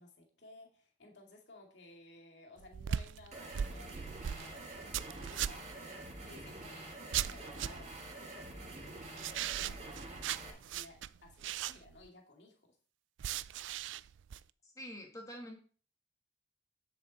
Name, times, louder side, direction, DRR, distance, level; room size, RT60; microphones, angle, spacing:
voice 1, 0.0-10.0 10.2-12.8, left 2 dB, 65° left, 2 dB, 2.3 m, -57 dB
sound 1, 2.6-5.8 7.1-8.0 9.2-12.1 13.2-14.4, right 10 dB, 75° right, 0.3 m, -39 dB
sound 2, 3.3-10.5, right 2 dB, 35° right, 2.0 m, -47 dB
voice 2, 14.6-15.5, equal, 15° left, 2 dB, 1.7 m, -46 dB
9.8 x 7.7 x 4.2 m, 0.41 s
head